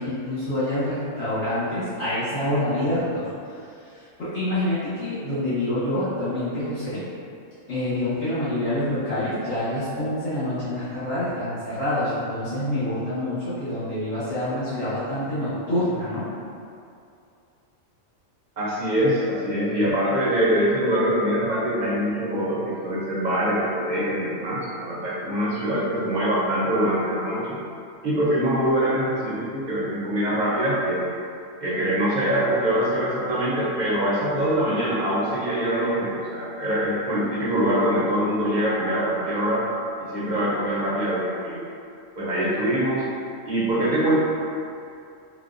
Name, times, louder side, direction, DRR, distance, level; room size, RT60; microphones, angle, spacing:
voice 1, 0.0-3.6 3.9-7.0 7.7-16.2, left 1 dB, 60° left, -15 dB, 1.3 m, -27 dB
voice 2, 18.6-27.6 28.0-31.1 31.6-39.7 40.0-41.6 42.2-43.0 43.5-44.2, equal, 45° right, -8 dB, 0.7 m, -24 dB
3.9 x 2.3 x 2.4 m, 2.5 s
omnidirectional pair, 1.3 m